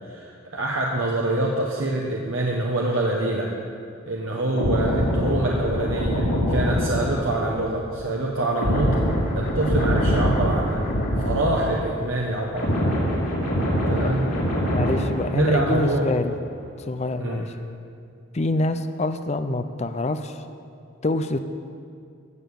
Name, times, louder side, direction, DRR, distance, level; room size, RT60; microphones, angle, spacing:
voice 1, 0.0-3.5 4.1-9.0 9.4-10.8 11.2-12.9 13.9-14.3 15.3-16.1 17.2-17.5, right 2 dB, 80° right, -2 dB, 1.2 m, -25 dB
sound 1, 4.5-12.0 12.3-16.0 16.3-16.6, equal, 90° left, 3.8 m, -24 dB
voice 2, 14.7-16.3 16.9-17.5 18.3-20.4 21.0-21.4, left 2 dB, 35° left, 9 dB, 0.5 m, -26 dB
15.5 x 7.2 x 6.8 m, 2.4 s
head